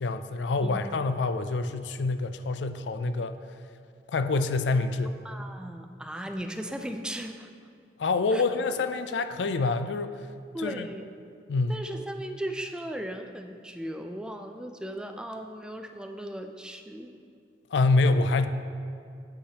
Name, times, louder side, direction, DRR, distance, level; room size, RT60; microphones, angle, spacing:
voice 1, 0.0-3.4 4.1-5.2 8.0-10.2 10.6-10.9 11.5-11.8 17.7-18.5, left 3 dB, 80° left, 10 dB, 0.4 m, -26 dB
voice 2, 5.2-7.5 8.3-8.4 10.5-11.0 11.7-17.1, right 1 dB, 5° right, 6 dB, 0.4 m, -37 dB
8.4 x 8.0 x 2.9 m, 2.4 s
head